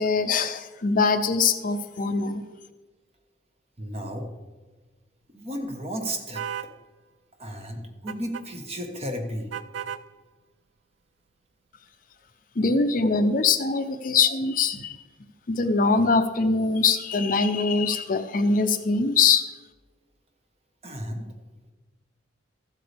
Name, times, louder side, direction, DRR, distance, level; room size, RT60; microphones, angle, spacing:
voice 1, 0.0-2.4 12.6-15.0 15.5-19.4, left 4 dB, 45° left, 9 dB, 0.5 m, -23 dB
voice 2, 3.8-4.3 5.3-6.4 7.4-9.5 20.8-21.3, equal, 35° right, 4 dB, 1.2 m, -33 dB
sound 1, 6.3-6.7 8.1-8.5 9.5-10.1, right 9 dB, 75° right, 0.4 m, -34 dB
13.5 x 8.3 x 3.4 m, 1.3 s
head